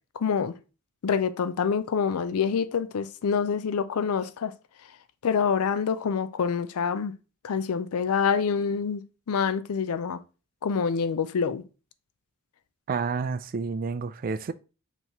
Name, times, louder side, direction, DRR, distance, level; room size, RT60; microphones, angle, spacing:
voice 1, 0.2-0.6 1.0-4.5 5.2-7.1 7.4-9.0 9.3-10.2 10.6-11.6, left 6 dB, 75° left, 0.4 m, -26 dB
voice 2, 12.9-14.5, right 5 dB, 40° right, 0.3 m, -29 dB
5.5 x 3.0 x 3.0 m
head